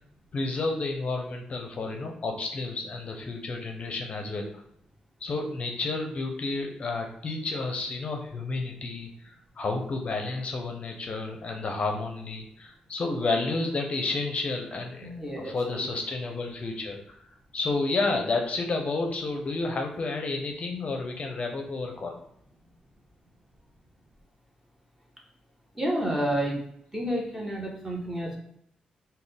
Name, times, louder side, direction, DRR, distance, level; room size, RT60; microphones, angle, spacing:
voice 1, 0.3-4.5 5.2-17.0 17.5-22.2, left 3 dB, 50° left, 3 dB, 0.5 m, -31 dB
voice 2, 15.0-15.8 25.7-26.6 26.9-28.4, right 1 dB, 10° right, -1 dB, 1.0 m, -30 dB
3.8 x 2.2 x 3.4 m, 0.72 s
cardioid pair, 65°, 3 cm